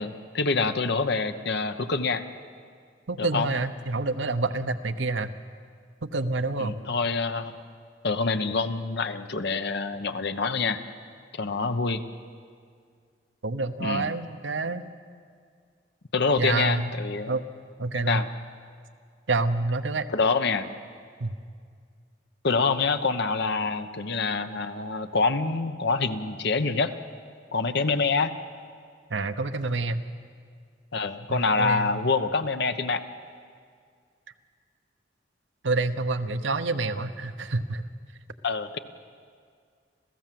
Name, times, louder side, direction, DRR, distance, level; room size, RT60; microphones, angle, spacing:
voice 1, 0.0-2.2 3.2-3.5 6.6-7.5 8.0-10.8 11.3-12.0 13.8-14.1 16.1-17.4 18.1-18.3 20.1-20.7 22.4-26.9 27.5-28.3 30.9-33.0 38.4-38.8, left 4 dB, 65° left, 9 dB, 1.0 m, -26 dB
voice 2, 3.1-5.3 6.0-6.7 13.4-14.8 16.4-16.9 17.3-17.4 17.8-18.2 19.3-20.1 21.2-21.3 29.1-30.0 31.3-32.0 35.6-37.8, right 3 dB, 70° right, 9 dB, 1.0 m, -28 dB
28.0 x 15.5 x 7.7 m, 2.1 s
head